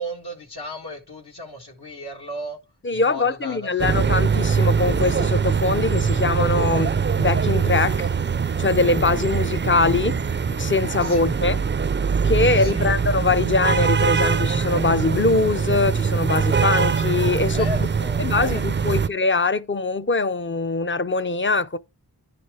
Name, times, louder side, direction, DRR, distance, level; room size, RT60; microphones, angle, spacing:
voice 1, 0.0-2.6 2.9-3.9 11.0-11.5 12.6-13.0 17.5-19.0, equal, 70° left, 1.4 m, -36 dB
voice 2, 2.8-8.1 8.6-10.2 10.5-11.6 12.2-17.7 18.2-21.8, left 3 dB, 30° left, 0.5 m, -22 dB
sound 1, 3.8-19.1, right 6 dB, 30° right, 0.4 m, -22 dB
10.5 x 4.3 x 4.7 m
wide cardioid pair, 50°, 41 cm